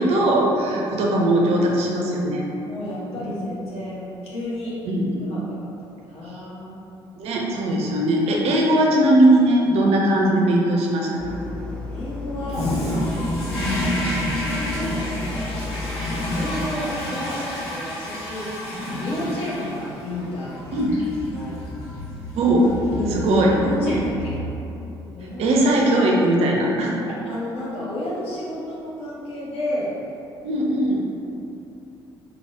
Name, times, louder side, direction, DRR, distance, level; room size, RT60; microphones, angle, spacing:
voice 1, 0.0-2.4 4.9-5.3 7.2-11.4 13.6-13.9 20.7-21.0 22.3-22.7 23.1-23.6 25.4-26.9 30.4-31.0, right 1 dB, 50° right, -1 dB, 0.5 m, -19 dB
voice 2, 2.7-4.8 5.2-5.7 6.0-6.8 11.9-12.8 14.3-18.5 18.8-20.9 21.3-21.6 22.9-23.2 23.6-24.4 25.1-25.8 27.0-29.9, left 1 dB, 50° left, -8 dB, 1.1 m, -31 dB
sound 1, 11.2-16.7, left 3 dB, 5° left, 0.4 m, -33 dB
Toilet flush, 12.5-24.8, left 1 dB, 70° left, 0.8 m, -30 dB
4.0 x 2.0 x 3.4 m, 2.9 s
figure-of-eight pair, 50°, 14 cm